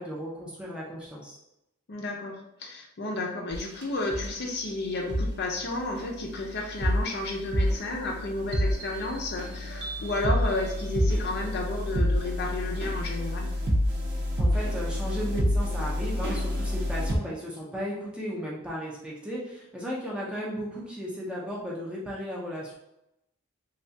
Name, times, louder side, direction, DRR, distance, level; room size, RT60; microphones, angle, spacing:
voice 1, 0.0-1.4 14.4-22.7, equal, 5° right, -5 dB, 0.5 m, -35 dB
voice 2, 1.9-13.5, left 2 dB, 50° left, 0 dB, 0.5 m, -32 dB
sound 1, 3.5-3.8 4.1-4.3 5.1-5.3 5.9-17.2, equal, 50° right, 0.6 m, -28 dB
3.2 x 2.3 x 2.7 m, 0.86 s
head